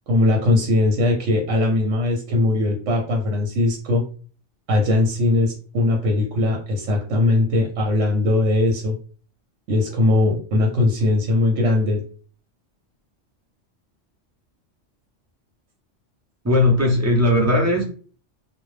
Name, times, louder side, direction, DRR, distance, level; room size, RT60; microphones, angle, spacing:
voice 1, 0.1-4.0 4.7-9.0 9.7-12.0, left 2 dB, 80° right, 1.0 m, -20 dB
voice 2, 16.4-17.8, left 1 dB, 20° right, 0.4 m, -18 dB
2.2 x 2.0 x 3.1 m
omnidirectional pair, 1.2 m